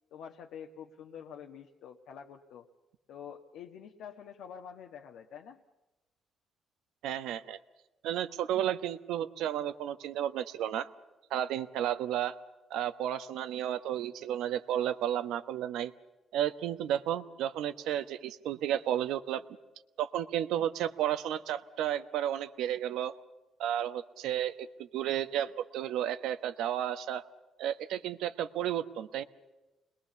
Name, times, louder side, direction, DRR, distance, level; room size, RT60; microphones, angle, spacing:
voice 1, 0.1-2.6 3.1-5.6, left 8 dB, 85° left, 2 dB, 1.5 m, -47 dB
voice 2, 7.0-7.6 8.0-10.9 11.3-12.4 12.7-15.9 16.3-19.4 20.0-23.1 23.6-27.2 27.6-29.2, right 11 dB, 90° right, 10 dB, 1.1 m, -32 dB
29.0 x 21.0 x 7.0 m, 1.1 s
cardioid pair, 90°, 0 cm